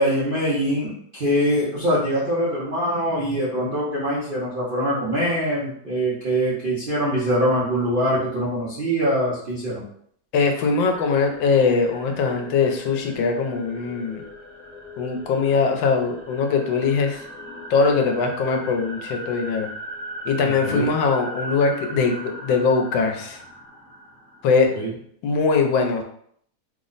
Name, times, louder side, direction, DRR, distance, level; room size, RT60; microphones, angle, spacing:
voice 1, 0.0-9.8 20.4-20.9 24.7-24.9, equal, 55° right, -9 dB, 0.5 m, -23 dB
voice 2, 10.3-14.2 15.0-17.2 17.7-19.7 20.2-23.4 24.4-24.7 25.2-26.0, left 4 dB, 80° left, 3 dB, 1.3 m, -21 dB
sound 1, 10.9-24.9, equal, 40° left, 0.9 m, -38 dB
3.3 x 2.0 x 3.8 m, 0.65 s
omnidirectional pair, 2.0 m